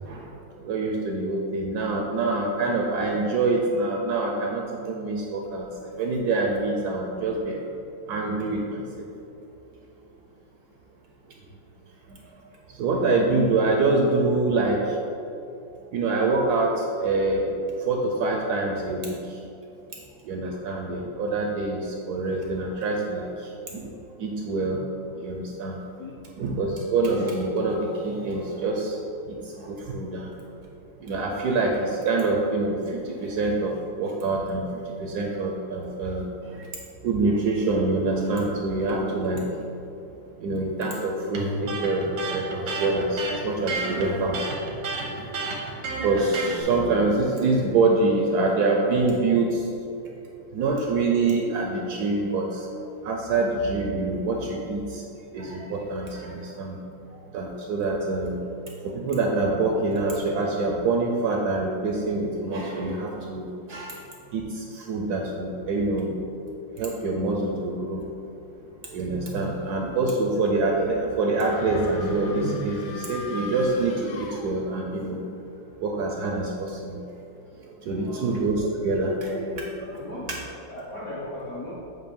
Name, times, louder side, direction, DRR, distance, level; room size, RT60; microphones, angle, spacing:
voice 1, 0.6-5.7 6.0-7.6 8.1-8.8 12.8-14.8 15.9-17.5 17.8-19.2 20.3-23.3 23.7-23.8 24.2-24.8 25.2-25.8 26.4-29.0 29.6-30.3 31.0-32.8 33.1-34.6 35.0-36.3 37.0-39.5 40.4-44.4 46.0-49.5 50.5-52.6 53.0-55.0 55.3-56.8 57.3-58.5 58.8-64.0 64.3-64.4 64.9-66.1 66.8-68.0 68.9-75.2 75.8-77.0 77.9-80.0, right 3 dB, 70° right, 0 dB, 1.0 m, -25 dB
Electric guitar, 41.3-46.6, right 3 dB, 90° right, 1.7 m, -31 dB
sound 1, 71.3-75.0, left 3 dB, 75° left, 0.7 m, -41 dB
voice 2, 77.9-78.3 80.0-81.7, left 1 dB, 55° left, -7 dB, 1.2 m, -38 dB
7.9 x 2.6 x 5.2 m, 2.7 s
omnidirectional pair, 2.1 m